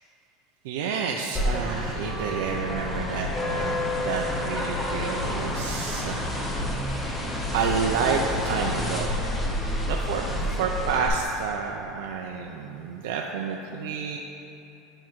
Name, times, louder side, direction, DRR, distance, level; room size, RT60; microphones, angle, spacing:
voice 1, 0.6-6.3 7.5-9.1 9.9-10.2 10.6-14.2, right 6 dB, 80° right, 0 dB, 0.4 m, -29 dB
sound 1, 1.3-11.1, left 1 dB, 10° left, 0.6 m, -29 dB
9.4 x 4.4 x 3.1 m, 2.9 s
cardioid pair, 165°, 0 cm